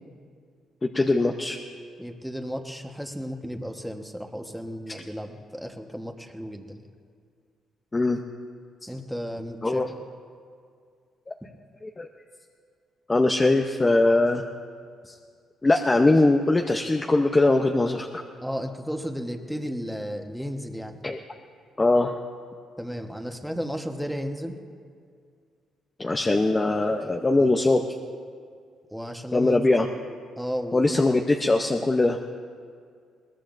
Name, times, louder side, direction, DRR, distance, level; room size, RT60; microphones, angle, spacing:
voice 1, 0.8-1.6 7.9-8.2 8.8-8.9 9.6-9.9 11.8-12.1 13.1-14.4 15.1-15.2 15.6-18.2 21.0-21.2 21.8-22.2 26.0-27.8 29.3-29.9 30.7-32.2, left 2 dB, 20° left, 3 dB, 0.8 m, -21 dB
voice 2, 2.0-6.8 8.9-9.8 18.4-21.0 22.8-24.6 27.4-27.5 28.9-29.6 30.4-31.2, equal, ahead, 4 dB, 1.3 m, -34 dB
21.5 x 18.5 x 2.6 m, 2.2 s
cardioid pair, 90°, 0 cm